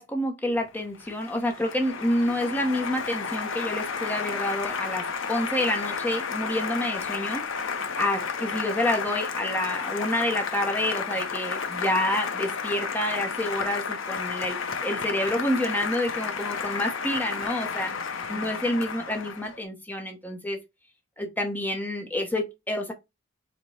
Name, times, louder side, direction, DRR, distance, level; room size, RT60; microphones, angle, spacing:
voice 1, 0.0-7.4 7.9-20.6 21.2-22.9, left 1 dB, 10° left, 0.8 m, -28 dB
Applause, 0.7-19.6, left 5 dB, 75° left, 0.7 m, -32 dB
4.8 x 2.2 x 4.1 m
head